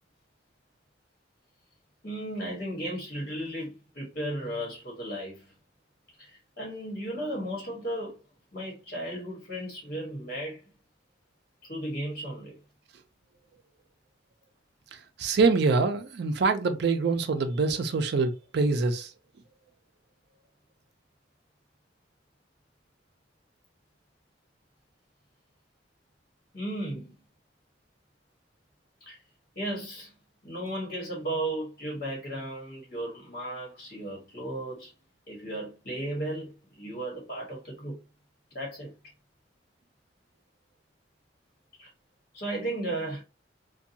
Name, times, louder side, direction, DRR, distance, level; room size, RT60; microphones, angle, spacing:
voice 1, 2.0-5.4 6.2-8.2 8.5-10.6 11.7-12.5 26.5-27.2 29.0-29.2 29.5-30.1 30.4-34.9 35.3-38.0 38.5-38.9 41.8-41.9 42.3-43.2, right 1 dB, 50° left, 1.2 m, -35 dB
voice 2, 15.2-19.1, right 4 dB, 60° right, 0.4 m, -25 dB
2.6 x 2.2 x 2.6 m
head